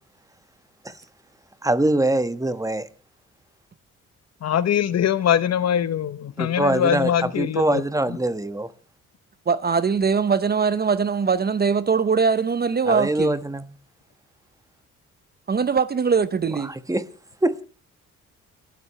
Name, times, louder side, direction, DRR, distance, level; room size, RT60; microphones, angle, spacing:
voice 1, 1.6-2.9 6.4-8.7 12.9-13.6 16.6-17.0 17.4-17.5, right 1 dB, 10° right, 1.3 m, -23 dB
voice 2, 4.4-7.8, left 9 dB, 55° left, 0.9 m, -22 dB
voice 3, 9.5-13.4 15.5-16.7, right 5 dB, 30° right, 0.7 m, -21 dB
30.0 x 12.5 x 3.2 m
cardioid pair, 85°, 30 cm